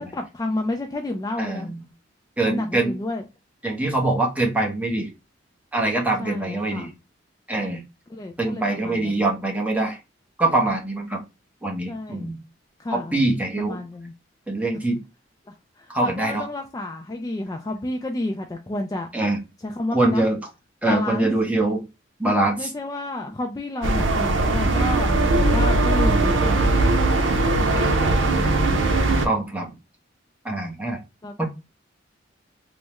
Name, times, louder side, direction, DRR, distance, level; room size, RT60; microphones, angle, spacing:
voice 1, 0.0-1.7 2.4-3.2 6.2-6.9 8.1-9.2 11.9-12.3 12.8-13.2 13.6-14.1 15.5-19.1 19.6-20.3 20.9-21.3 22.6-27.0 27.6-28.5 31.2-31.5, left 2 dB, 20° left, 0.3 m, -30 dB
voice 2, 1.4-1.8 2.4-2.9 3.6-5.1 5.7-6.9 7.5-7.8 8.4-10.0 10.4-11.2 11.6-12.4 12.9-13.8 14.5-15.0 15.9-16.5 19.1-19.4 19.9-20.4 20.8-21.8 22.2-22.7 26.4-26.7 29.1-29.7 30.4-31.0 31.4-31.5, right 2 dB, 10° right, 0.7 m, -23 dB
sound 1, 23.8-29.3, right 2 dB, 85° right, 0.6 m, -20 dB
3.4 x 2.1 x 2.9 m
head